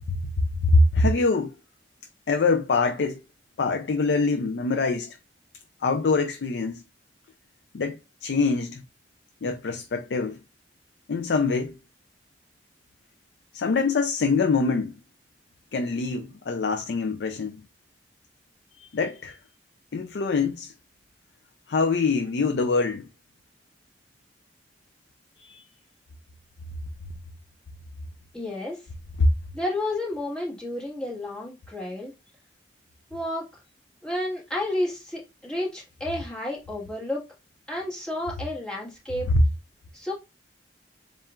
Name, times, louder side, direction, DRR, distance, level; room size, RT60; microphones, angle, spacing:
voice 1, 0.6-1.5 2.3-3.2 3.6-5.2 5.8-6.8 7.7-8.8 9.4-10.4 11.1-11.8 13.5-15.0 15.7-17.6 18.8-19.4 19.9-20.7 21.7-23.1 25.4-25.6 29.2-29.3 39.3-39.4, left 3 dB, 70° left, 0.4 m, -24 dB
voice 2, 28.3-28.8 29.5-32.1 33.1-33.4 34.0-37.3 37.7-39.3 39.9-40.1, left 1 dB, 5° left, 1.6 m, -31 dB
7.1 x 2.4 x 2.4 m
head